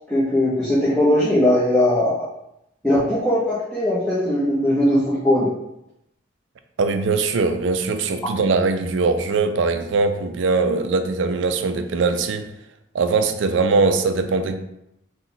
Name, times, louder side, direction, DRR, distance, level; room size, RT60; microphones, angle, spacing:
voice 1, 0.1-2.3 2.8-5.5, left 1 dB, 5° left, -10 dB, 0.7 m, -19 dB
voice 2, 6.8-12.5 12.9-14.6, right 4 dB, 75° right, 8 dB, 0.4 m, -21 dB
3.9 x 2.3 x 4.0 m, 0.82 s
head